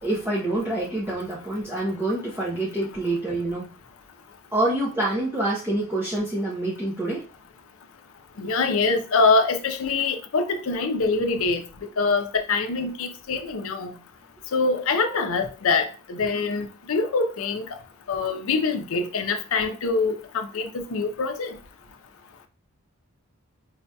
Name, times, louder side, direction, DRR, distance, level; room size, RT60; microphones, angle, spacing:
voice 1, 0.0-3.7 4.5-7.2, right 1 dB, 10° right, 0.6 m, -26 dB
voice 2, 8.4-11.6 12.0-13.9 14.5-17.7 18.1-21.6, left 4 dB, 65° left, 0.5 m, -24 dB
4.7 x 2.7 x 2.2 m
head